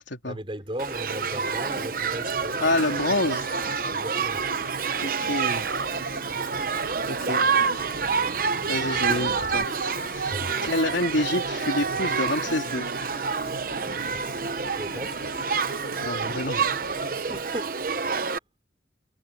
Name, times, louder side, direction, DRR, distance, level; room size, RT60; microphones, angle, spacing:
voice 1, 0.2-2.6 3.9-4.5 10.3-10.6 14.7-15.2 17.2-18.2, equal, 30° right, 4.6 m, -37 dB
sound 1, 0.7-17.4, left 1 dB, 55° left, 3.2 m, -43 dB
Shout / Human group actions, 0.8-18.4, right 5 dB, 50° right, 0.9 m, -28 dB
voice 2, 2.6-3.5 5.0-5.7 7.1-7.4 8.7-9.7 10.1-10.3 10.6-12.9 16.0-16.7, left 2 dB, 85° left, 3.6 m, -27 dB
sound 2, 5.6-10.6, right 2 dB, 70° right, 4.4 m, -39 dB
head